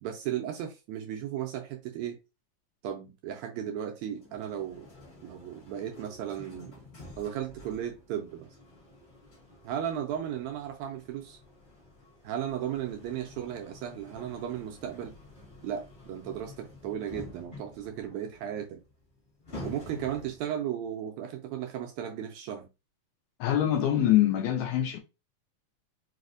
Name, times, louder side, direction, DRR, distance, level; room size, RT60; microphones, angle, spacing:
voice 1, 0.0-2.2 2.8-4.9 5.2-6.8 7.2-8.5 9.6-11.4 12.2-15.1 15.6-18.8 19.6-22.7, right 10 dB, 80° right, 1.7 m, -35 dB
sound 1, 4.2-20.6, left 2 dB, 40° left, 0.9 m, -49 dB
voice 2, 23.4-25.0, left 12 dB, 80° left, 1.7 m, -24 dB
4.8 x 2.1 x 2.5 m
omnidirectional pair, 3.5 m